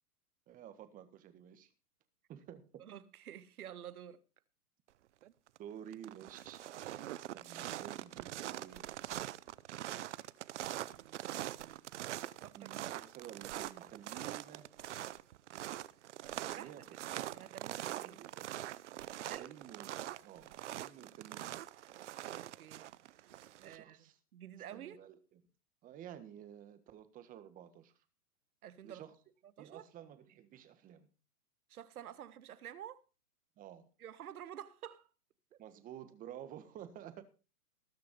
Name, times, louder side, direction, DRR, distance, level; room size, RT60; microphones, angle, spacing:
voice 1, 0.5-1.7 2.3-2.8 5.6-6.6 7.3-8.8 12.5-14.7 16.5-17.0 18.1-18.5 19.4-19.9 20.2-21.6 23.6-24.1 24.7-25.4 25.8-27.9 28.8-29.1 29.6-31.1 33.6-33.8 35.6-37.3, right 10 dB, 20° right, 1.5 m, -51 dB
voice 2, 2.8-4.2 10.5-11.9 12.4-12.7 16.5-16.7 17.1-18.2 19.2-19.5 22.2-22.9 23.6-25.0 28.6-29.0 29.6-29.8 31.7-33.0 34.0-35.1 35.5-35.6, right 10 dB, 70° right, 1.4 m, -50 dB
sound 1, 5.2-5.6 5.9-23.8, right 13 dB, 50° right, 0.7 m, -43 dB
19.0 x 6.7 x 5.3 m
hypercardioid pair, 145°, 46 cm